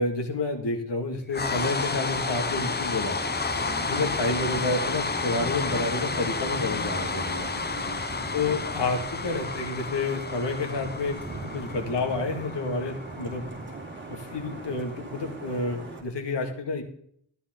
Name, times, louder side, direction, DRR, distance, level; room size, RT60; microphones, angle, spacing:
voice 1, 0.0-3.2 3.9-7.5 8.3-13.5 14.1-16.8, left 3 dB, 65° left, 3 dB, 2.3 m, -29 dB
sound 1, 1.3-15.4, left 4 dB, 20° left, 0.8 m, -31 dB
Vehicle horn car horn honking / Traffic noise roadway noise, 1.4-16.0, right 3 dB, 25° right, 3.1 m, -39 dB
13.0 x 11.0 x 3.9 m, 0.64 s
wide cardioid pair, 110°, 45 cm